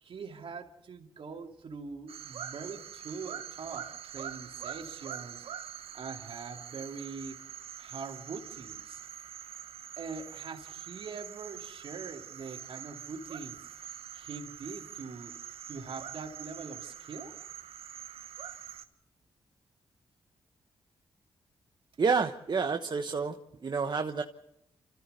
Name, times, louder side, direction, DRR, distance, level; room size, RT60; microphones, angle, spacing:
voice 1, 0.0-5.4 5.9-7.4 7.8-9.0 10.0-13.6 14.1-15.3 15.7-17.4, right 5 dB, 65° right, 3 dB, 2.6 m, -43 dB
sound 1, 2.1-18.9, right 9 dB, 80° right, 1.2 m, -44 dB
voice 2, 22.0-23.3 23.6-24.2, right 5 dB, 50° right, 5 dB, 1.2 m, -29 dB
29.0 x 14.5 x 6.7 m, 0.80 s
cardioid pair, 55°, 10 cm